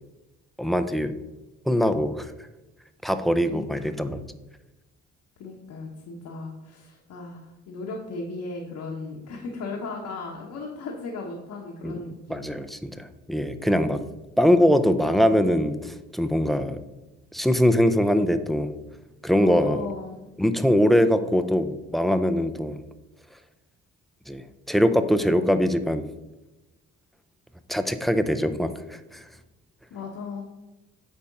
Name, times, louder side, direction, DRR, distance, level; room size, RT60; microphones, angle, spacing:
voice 1, 0.6-1.1 1.7-2.3 3.0-4.2 11.8-12.0 12.3-14.0 14.4-16.8 17.3-18.7 19.2-19.8 20.4-22.8 24.3-26.0 27.7-29.2, equal, ahead, 10 dB, 0.5 m, -22 dB
voice 2, 3.5-3.9 5.4-12.5 19.4-20.3 29.9-30.4, left 3 dB, 75° left, -2 dB, 1.3 m, -36 dB
8.6 x 3.6 x 5.4 m, 1.1 s
cardioid pair, 90°, 30 cm